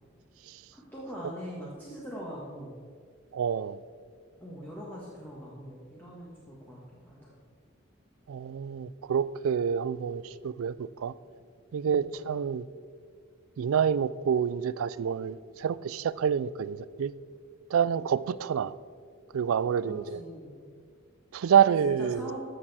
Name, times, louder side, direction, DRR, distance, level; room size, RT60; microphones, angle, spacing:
voice 1, 0.7-2.8 4.4-7.3 11.8-12.3 19.8-20.6 21.5-22.4, equal, 10° left, -6 dB, 1.5 m, -42 dB
voice 2, 3.3-3.8 8.3-11.1 11.7-12.7 13.6-17.1 17.7-18.7 19.3-20.2 21.3-22.3, right 8 dB, 90° right, 18 dB, 0.4 m, -27 dB
14.5 x 6.7 x 4.2 m, 2.1 s
head